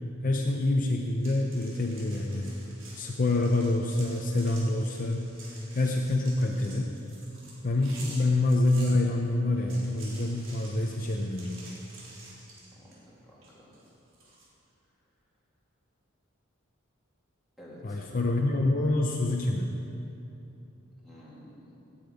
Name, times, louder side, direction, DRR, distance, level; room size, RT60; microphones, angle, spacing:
voice 1, 0.2-2.5 2.9-5.3 5.7-6.9 7.6-11.6 17.8-19.7, left 2 dB, 40° left, 1 dB, 0.7 m, -26 dB
sound 1, 1.2-9.0 9.5-13.0 13.4-14.4, right 2 dB, 70° right, 3.7 m, -49 dB
voice 2, 12.7-13.7 17.6-18.0 21.0-21.8, equal, ahead, -8 dB, 2.4 m, -51 dB
17.5 x 8.8 x 5.1 m, 2.9 s
head